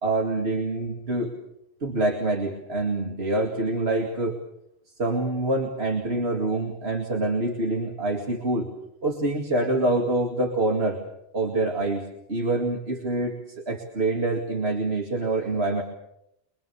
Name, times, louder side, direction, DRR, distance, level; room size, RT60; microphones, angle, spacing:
voice 1, 0.0-1.3 1.8-4.4 5.0-8.7 9.0-11.0 11.3-12.0 12.3-13.4 13.7-15.8, right 2 dB, 90° right, 1 dB, 2.6 m, -26 dB
24.0 x 23.5 x 7.1 m, 0.81 s
omnidirectional pair, 1.0 m